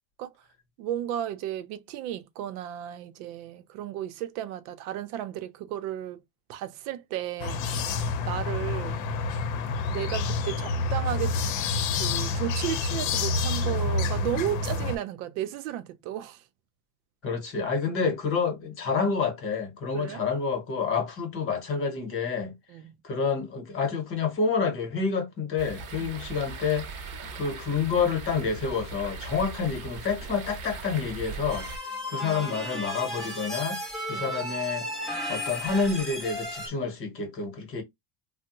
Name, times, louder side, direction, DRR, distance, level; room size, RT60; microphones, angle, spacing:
voice 1, 0.8-6.2 6.5-8.0 8.3-9.0 9.9-11.4 11.9-16.4 19.9-20.2 22.7-23.0 26.0-26.2 34.1-34.3, right 11 dB, 75° right, 0.6 m, -34 dB
sound 1, 7.4-15.0, left 3 dB, 65° left, 0.7 m, -28 dB
voice 2, 17.2-22.5 23.0-26.9 27.3-31.7 32.1-33.8 34.1-34.9 35.3-37.8, left 5 dB, 30° left, 0.9 m, -28 dB
sound 2, 25.6-31.8, right 4 dB, 35° right, 0.7 m, -39 dB
sound 3, 31.5-36.7, left 1 dB, ahead, 0.4 m, -34 dB
3.3 x 2.1 x 2.8 m
cardioid pair, 165°, 44 cm